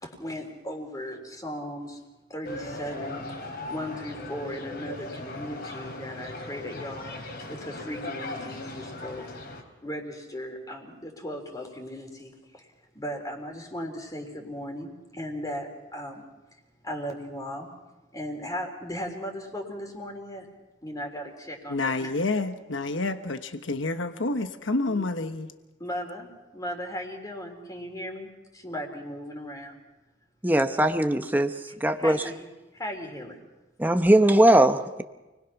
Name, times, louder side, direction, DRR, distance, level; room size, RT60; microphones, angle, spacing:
voice 1, 0.0-2.0 2.3-3.3 3.7-7.2 7.5-9.5 9.8-12.7 12.9-16.2 16.5-17.7 18.1-20.5 20.8-22.1 24.9-25.1 25.8-29.8 32.0-32.5 32.7-33.4, equal, 20° left, 2 dB, 3.7 m, -37 dB
sound 1, 2.4-9.6, left 2 dB, 60° left, 3.6 m, -38 dB
voice 2, 21.7-25.5, left 2 dB, 80° left, 9 dB, 1.1 m, -29 dB
voice 3, 30.4-31.5 31.8-32.2 33.8-35.0, right 1 dB, 10° right, 7 dB, 0.9 m, -20 dB
29.0 x 20.5 x 5.9 m, 1.1 s
head